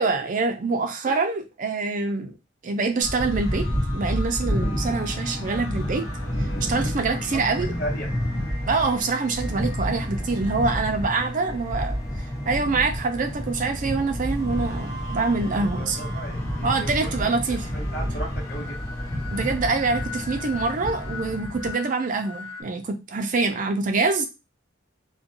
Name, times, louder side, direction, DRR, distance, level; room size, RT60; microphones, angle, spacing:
voice 1, 0.0-2.3 2.6-3.7 3.9-6.0 6.4-7.7 8.7-12.0 12.4-16.0 16.6-17.7 19.3-24.3, right 3 dB, 40° right, 0.4 m, -25 dB
sound 1, 3.0-22.6, left 2 dB, 70° left, 0.8 m, -42 dB
sound 2, 3.0-21.7, equal, 35° left, 1.0 m, -30 dB
sound 3, 4.8-21.4, left 1 dB, 15° left, 0.4 m, -39 dB
voice 2, 7.7-8.1 15.4-19.0, equal, 55° left, 1.2 m, -37 dB
2.5 x 2.2 x 2.6 m
head